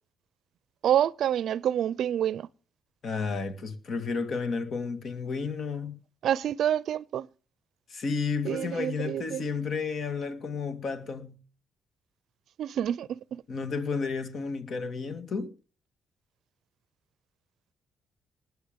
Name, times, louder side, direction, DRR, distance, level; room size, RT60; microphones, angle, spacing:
voice 1, 0.8-2.5 6.2-7.3 8.4-9.4 12.6-13.4, right 10 dB, 70° right, 0.5 m, -27 dB
voice 2, 3.0-6.0 7.9-11.4 13.5-15.5, left 4 dB, 55° left, 2.1 m, -32 dB
19.5 x 6.9 x 5.3 m
cardioid pair, 90°, 0 cm